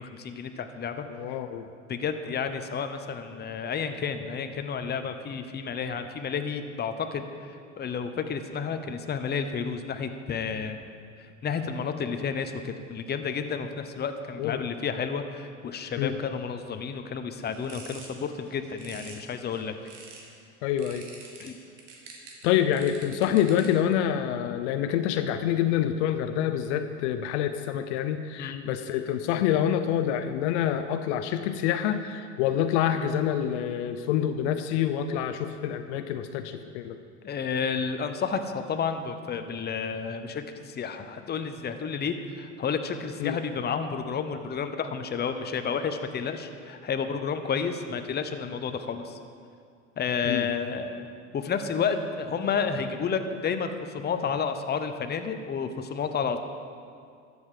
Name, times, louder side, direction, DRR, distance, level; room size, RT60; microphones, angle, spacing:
voice 1, 0.0-1.1 1.9-10.8 11.4-19.7 21.4-21.6 28.4-28.7 37.2-49.2 50.0-51.1 51.3-56.4, left 6 dB, 25° left, 7 dB, 0.9 m, -31 dB
voice 2, 1.1-1.7 14.4-14.6 16.0-16.2 20.6-21.1 22.4-37.0 43.2-43.4 50.2-50.5, left 10 dB, 65° left, 9 dB, 0.7 m, -27 dB
sound 1, 17.3-20.4 20.8-23.9, right 4 dB, 80° right, 1.8 m, -48 dB
13.0 x 8.0 x 5.0 m, 2.3 s
hypercardioid pair, 80°, 37 cm